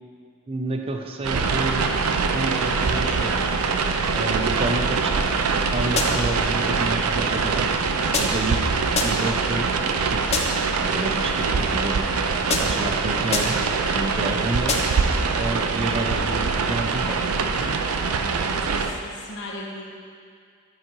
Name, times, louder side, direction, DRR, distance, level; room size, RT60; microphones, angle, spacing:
voice 1, 0.5-1.9 2.3-3.5 4.1-5.1 5.5-7.8 8.1-8.6 8.9-9.7 10.1-10.5 10.8-11.5 11.7-12.1 12.6-13.6 13.9-14.7 15.4-17.2, right 2 dB, 25° right, 3 dB, 0.5 m, -29 dB
sound 1, 1.2-18.9, right 4 dB, 75° right, 0.5 m, -23 dB
sound 2, 6.0-6.4 8.1-8.6 8.9-9.4 10.3-10.7 12.5-12.9 13.3-13.7 14.7-15.1, left 3 dB, 30° left, 0.6 m, -27 dB
voice 2, 18.2-20.0, left 1 dB, 55° left, 0 dB, 0.9 m, -37 dB
10.5 x 4.9 x 3.0 m, 2.2 s
head